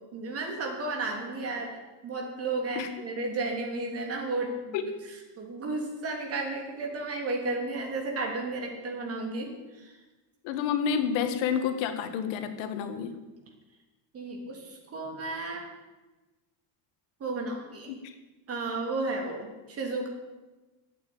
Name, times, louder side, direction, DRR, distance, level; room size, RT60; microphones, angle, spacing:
voice 1, 0.1-1.8 2.0-4.7 5.4-9.9 14.1-15.7 17.2-17.9 18.5-20.1, right 2 dB, 30° right, 1 dB, 3.1 m, -33 dB
voice 2, 10.4-13.1 18.0-18.1, left 7 dB, 70° left, 8 dB, 1.8 m, -29 dB
12.0 x 8.6 x 9.3 m, 1.2 s
cardioid pair, 150°, 46 cm